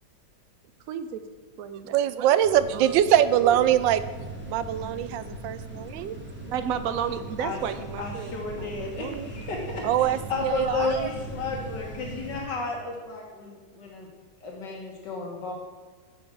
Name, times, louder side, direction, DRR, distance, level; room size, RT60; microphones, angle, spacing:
voice 1, 0.9-1.2 1.6-2.4 2.7-3.0 3.4-3.6 6.5-9.8, right 8 dB, 60° right, 10 dB, 1.0 m, -33 dB
voice 2, 1.9-4.0 4.5-6.2 9.8-11.1, right 11 dB, 90° right, 14 dB, 1.3 m, -23 dB
sound 1, 2.4-12.4, right 1 dB, 5° right, 1.6 m, -39 dB
voice 3, 8.0-14.1 14.4-15.5, left 3 dB, 70° left, -1 dB, 2.0 m, -33 dB
7.9 x 6.3 x 7.6 m, 1.5 s
omnidirectional pair, 2.0 m